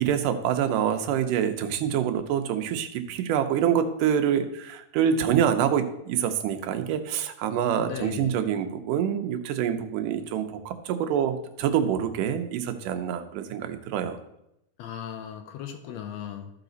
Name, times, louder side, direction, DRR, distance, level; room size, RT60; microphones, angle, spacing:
voice 1, 0.0-14.2, right 9 dB, 80° right, 8 dB, 2.3 m, -26 dB
voice 2, 7.8-8.3 14.8-16.5, left 8 dB, 75° left, 6 dB, 1.6 m, -37 dB
13.5 x 4.9 x 3.9 m, 0.82 s
omnidirectional pair, 3.7 m